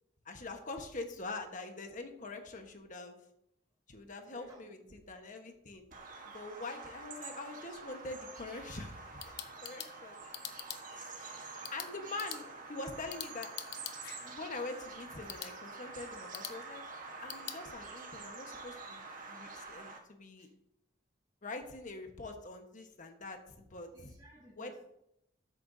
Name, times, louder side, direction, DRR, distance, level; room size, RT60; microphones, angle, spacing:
voice 1, 0.2-3.2 3.9-5.8 6.3-10.3 10.9-13.5 14.2-16.8 17.2-20.5 21.4-24.2 24.6-24.7, left 3 dB, 45° left, 5 dB, 1.3 m, -44 dB
voice 2, 4.3-5.0 6.3-6.4 20.4-20.5 23.9-24.8, right 1 dB, 20° right, 0 dB, 1.0 m, -56 dB
Bird vocalization bird call bird song, 5.9-20.0, right 4 dB, 45° right, 1.4 m, -47 dB
sound 1, 8.9-17.6, left 10 dB, 60° left, 0.8 m, -48 dB
12.5 x 8.8 x 2.8 m, 0.80 s
head